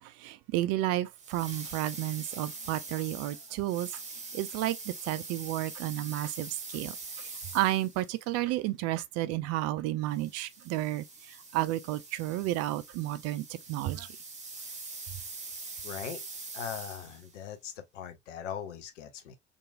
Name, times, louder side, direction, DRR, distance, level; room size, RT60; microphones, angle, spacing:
voice 1, 0.2-3.9 4.3-6.9 7.5-11.0 11.5-14.1, right 15 dB, 45° right, 0.4 m, -31 dB
sound 1, 1.2-8.2 10.1-17.3, right 3 dB, 20° right, 1.0 m, -43 dB
voice 2, 15.8-16.2 16.5-19.4, left 8 dB, 75° left, 0.6 m, -40 dB
2.9 x 2.5 x 2.3 m
figure-of-eight pair, 65°, 37 cm